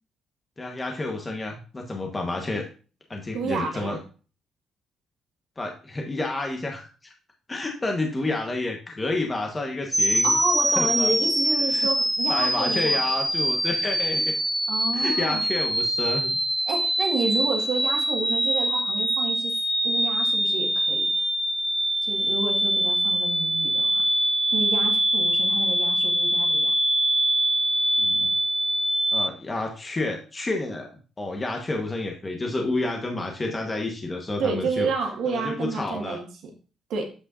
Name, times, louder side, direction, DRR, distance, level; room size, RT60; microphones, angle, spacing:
voice 1, 0.6-2.7 3.1-4.0 5.6-7.1 7.5-10.4 10.8-11.1 11.7-11.9 12.3-14.3 14.9-16.4 28.0-28.3 29.1-30.9 31.2-34.9 35.3-36.2, left 2 dB, 25° left, 2 dB, 1.2 m, -30 dB
voice 2, 3.3-4.0 10.2-13.0 14.7-15.4 16.6-19.5 19.8-21.1 22.0-24.0 24.5-26.7 34.4-36.5 36.9-37.1, right 4 dB, 80° right, 2 dB, 1.6 m, -30 dB
Noise Acute, 9.9-29.3, right 1 dB, 5° right, 0.5 m, -24 dB
8.3 x 6.1 x 2.5 m, 0.36 s
cardioid pair, 90°, 0 cm